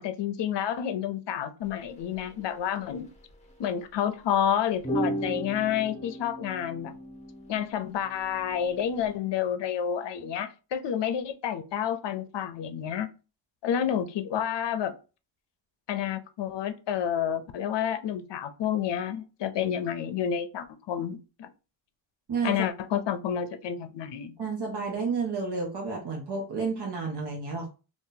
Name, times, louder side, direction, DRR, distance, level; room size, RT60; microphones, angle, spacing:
voice 1, 0.0-3.1 3.6-6.9 7.5-13.1 13.6-14.9 15.9-21.5 22.4-24.4, left 9 dB, 65° left, 0.6 m, -29 dB
sound 1, 1.7-1.8 2.1-2.3 3.1-3.5 4.8-9.1, equal, 15° left, 0.7 m, -35 dB
voice 2, 22.3-22.7 24.4-27.7, right 4 dB, 60° right, 1.0 m, -31 dB
2.7 x 2.5 x 3.8 m
wide cardioid pair, 125°, 45 cm